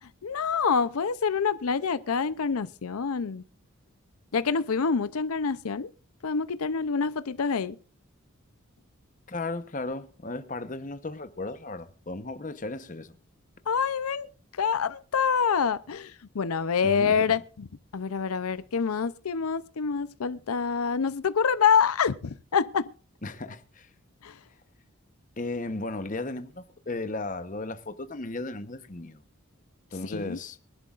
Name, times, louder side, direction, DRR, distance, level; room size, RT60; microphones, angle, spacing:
voice 1, 0.2-3.4 4.3-5.9 6.2-7.8 13.7-14.3 14.6-17.7 17.9-22.9 24.2-24.3 30.1-30.4, left 6 dB, 90° left, 0.6 m, -26 dB
voice 2, 9.3-13.2 16.8-17.4 23.2-23.9 25.4-29.2 29.9-30.6, left 2 dB, 35° left, 0.9 m, -35 dB
23.0 x 11.5 x 2.5 m
head